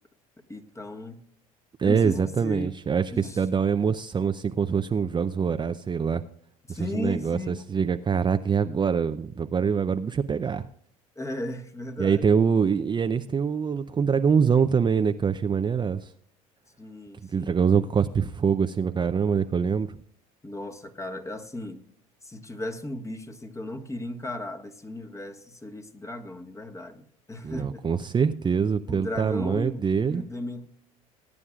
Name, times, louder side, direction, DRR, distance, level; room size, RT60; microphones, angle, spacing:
voice 1, 0.5-1.2 1.8-2.7 3.1-3.4 6.7-7.6 11.1-12.3 16.8-17.6 20.4-21.8 22.2-28.0 28.9-29.8 30.1-30.7, left 1 dB, 15° left, 1.5 m, -36 dB
voice 2, 1.8-6.2 6.7-10.7 12.0-16.1 17.3-20.0 27.4-30.2, right 6 dB, 25° right, 0.6 m, -24 dB
20.0 x 9.5 x 2.4 m
hypercardioid pair, 70°, 18 cm